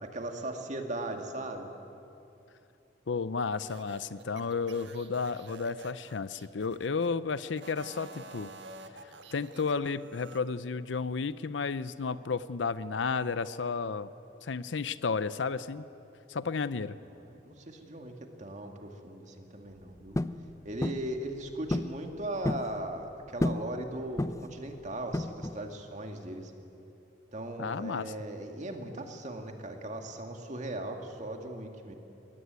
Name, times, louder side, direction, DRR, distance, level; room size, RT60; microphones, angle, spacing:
voice 1, 0.0-1.7 17.2-20.2 20.6-26.5 27.3-31.9, right 1 dB, 40° right, 4 dB, 2.1 m, -38 dB
voice 2, 3.1-8.5 9.3-14.1 14.4-15.8 16.3-17.0 27.6-28.1, left 5 dB, 90° left, 15 dB, 0.6 m, -32 dB
sound 1, 3.6-7.1 7.5-10.4, right 3 dB, 75° right, 1.6 m, -49 dB
sound 2, 20.2-20.4 20.8-21.1 21.7-22.0 22.2-22.7 23.4-23.7 24.2-24.5 25.1-25.6, left 1 dB, 15° left, 0.5 m, -30 dB
21.5 x 18.0 x 9.6 m, 2.8 s
head